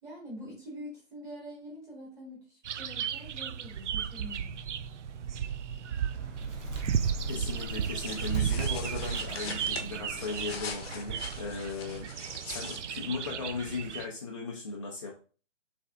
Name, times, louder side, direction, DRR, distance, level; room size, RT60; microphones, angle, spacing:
voice 1, 0.0-4.5, equal, 10° right, -4 dB, 1.3 m, -45 dB
sound 1, 2.6-14.1, right 8 dB, 65° right, 0.5 m, -34 dB
Bird, 5.9-11.6, right 1 dB, 90° right, 1.3 m, -42 dB
voice 2, 7.3-12.1 12.5-15.2, left 4 dB, 25° left, -3 dB, 0.5 m, -37 dB
sound 2, 8.0-13.4, left 5 dB, 50° left, 0.9 m, -43 dB
5.9 x 3.3 x 2.4 m, 0.37 s
hypercardioid pair, 150°, 38 cm